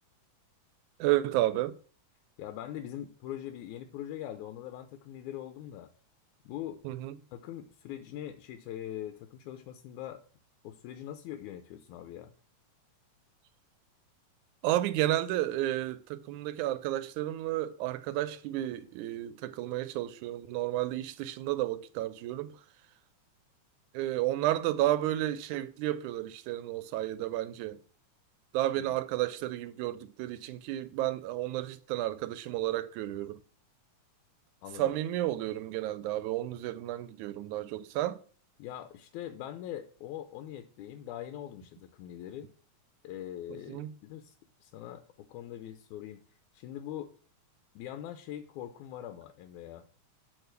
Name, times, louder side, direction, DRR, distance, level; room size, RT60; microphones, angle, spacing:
voice 1, 1.0-1.8 6.8-7.2 14.6-22.5 23.9-27.8 28.5-33.4 34.8-38.2 43.5-43.9, right 14 dB, 90° right, 2.0 m, -32 dB
voice 2, 2.4-5.9 6.5-6.8 7.3-10.2 10.6-12.3 28.8-28.9 34.6-34.9 38.6-42.5 43.0-44.4 44.6-47.1 47.8-49.9, left 11 dB, 90° left, 2.1 m, -42 dB
8.0 x 3.8 x 6.7 m
omnidirectional pair, 3.4 m